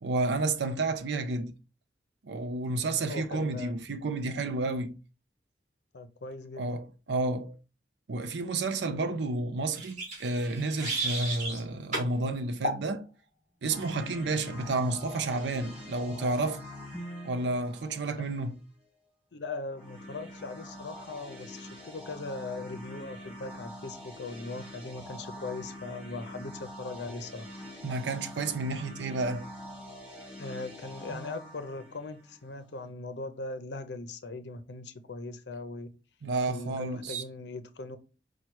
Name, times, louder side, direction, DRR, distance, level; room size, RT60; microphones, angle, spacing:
voice 1, 0.0-1.5 2.2-4.9 6.6-7.5 8.1-13.0 13.6-16.6 17.2-18.6 27.8-29.5 36.2-37.2, right 2 dB, 80° right, 0.5 m, -31 dB
voice 2, 3.1-3.7 5.9-6.8 19.3-27.5 30.4-35.9 36.5-38.0, left 3 dB, 75° left, 0.6 m, -40 dB
sound 1, 9.7-11.6 11.9-12.1 12.6-12.8, right 1 dB, 40° right, 2.2 m, -33 dB
sound 2, 13.7-18.5 19.7-32.8, left 1 dB, 5° right, 1.6 m, -45 dB
4.4 x 2.3 x 4.5 m
head